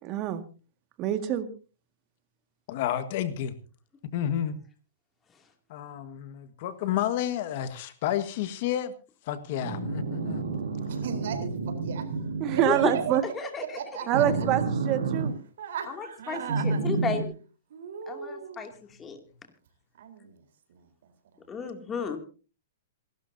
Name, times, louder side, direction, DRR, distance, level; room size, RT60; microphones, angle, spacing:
voice 1, 0.0-0.4 1.0-1.5 12.4-13.2 14.1-15.4, right 11 dB, 35° right, 9 dB, 1.9 m, -26 dB
voice 2, 2.7-3.6 4.1-4.5 5.7-8.9 9.3-10.4, left 11 dB, 50° left, 11 dB, 1.6 m, -30 dB
sound 1, 9.6-13.2 14.1-15.3 16.5-17.2, right 4 dB, 85° right, 3.6 m, -30 dB
voice 3, 10.9-12.2 12.5-14.5 15.6-16.8 17.7-18.7 20.0-20.4 20.7-20.9, right 7 dB, 70° right, 7 dB, 4.0 m, -37 dB
voice 4, 13.3-13.8 14.1-14.4 15.9-17.3 18.1-18.7 19.0-19.2 21.5-22.2, left 5 dB, 15° left, 5 dB, 2.6 m, -33 dB
27.0 x 12.5 x 2.8 m, 0.35 s
hypercardioid pair, 140°, 0 cm